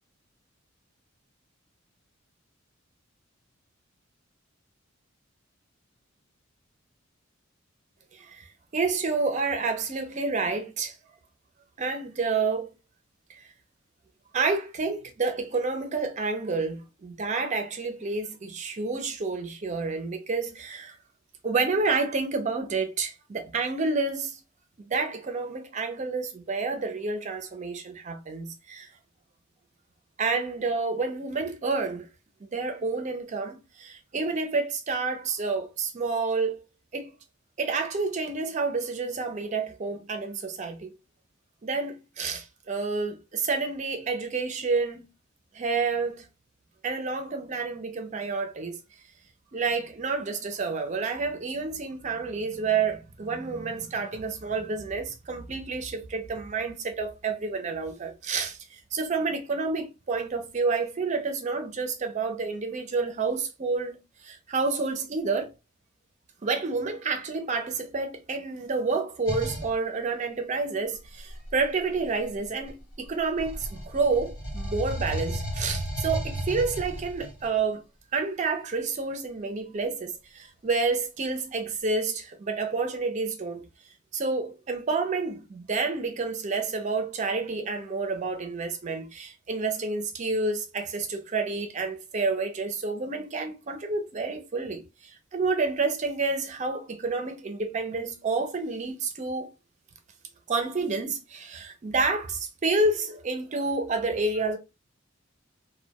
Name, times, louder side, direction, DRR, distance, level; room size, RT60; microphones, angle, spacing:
voice 1, 8.1-10.9 11.8-12.7 13.3-13.4 14.3-21.0 21.4-24.4 24.8-28.9 30.2-32.1 32.5-36.6 36.9-37.1 37.6-40.9 41.6-45.0 45.5-46.3 46.8-48.8 49.5-64.0 64.2-65.5 66.4-77.8 78.1-83.6 84.1-99.5 100.5-104.6, right 4 dB, 35° right, 0.4 m, -29 dB
sound 1, 69.3-69.7 71.0-72.9 73.4-77.5, equal, 85° left, 1.0 m, -34 dB
2.1 x 2.1 x 2.8 m
head